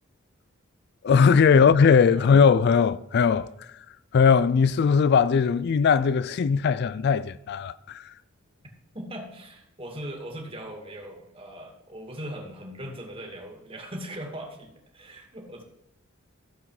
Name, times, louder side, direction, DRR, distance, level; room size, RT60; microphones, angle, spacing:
voice 1, 1.0-3.5 4.1-8.0, left 6 dB, 50° left, 0.3 m, -19 dB
voice 2, 8.9-15.6, equal, 25° right, 2.2 m, -39 dB
14.5 x 7.3 x 4.8 m
head